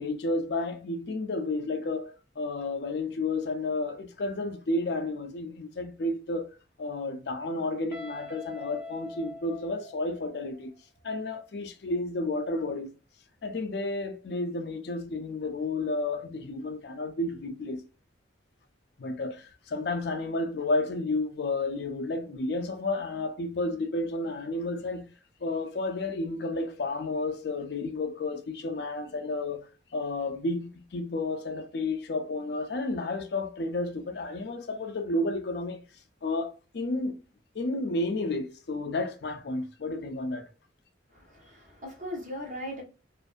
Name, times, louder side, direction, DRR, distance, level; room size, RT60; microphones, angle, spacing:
voice 1, 0.0-6.5 6.8-10.7 11.0-12.9 13.4-17.8 19.0-25.1 25.4-29.6 29.9-35.8 36.2-37.2 37.5-40.5, left 2 dB, 60° left, 0.4 m, -31 dB
Guitar, 7.9-10.7, left 2 dB, 10° right, 0.7 m, -44 dB
voice 2, 41.1-42.8, equal, 40° right, 0.9 m, -38 dB
2.5 x 2.4 x 2.4 m
head